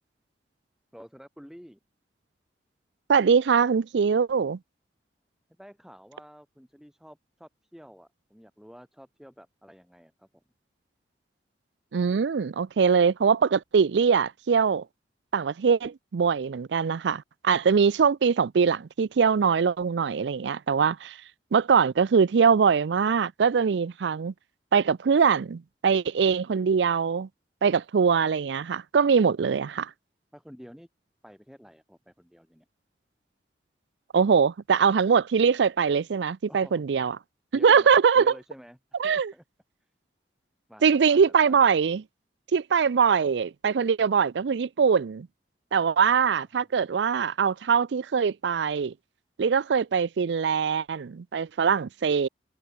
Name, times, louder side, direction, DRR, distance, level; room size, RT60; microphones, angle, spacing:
voice 1, 0.9-1.8 5.6-10.4 30.3-30.9 31.2-32.7 36.5-36.8 37.5-39.4 40.7-41.6 46.0-46.7, equal, 5° right, 5.6 m, -50 dB
voice 2, 3.1-4.6 11.9-14.8 15.3-21.2 21.5-24.3 24.7-27.3 27.6-29.9 34.1-37.2 37.6-38.3 39.0-39.3 40.8-42.0 42.5-45.3 45.7-48.9 49.4-52.3, right 6 dB, 80° right, 0.4 m, -22 dB
head